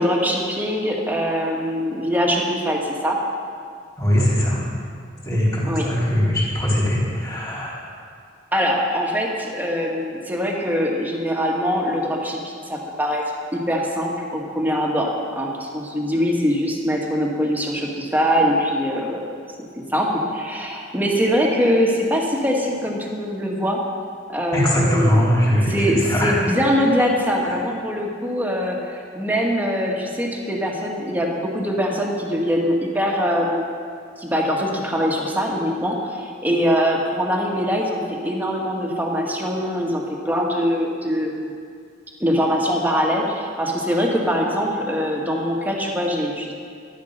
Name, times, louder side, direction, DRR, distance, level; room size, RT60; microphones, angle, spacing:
voice 1, 0.0-3.2 5.6-5.9 8.5-19.3 19.9-23.8 24.3-25.3 25.6-33.6 34.2-41.5 42.2-46.5, equal, 10° right, -1 dB, 1.9 m, -23 dB
voice 2, 4.0-4.6 5.2-7.7 24.5-26.4, equal, 20° left, -6 dB, 4.2 m, -20 dB
13.0 x 11.5 x 6.7 m, 2.2 s
head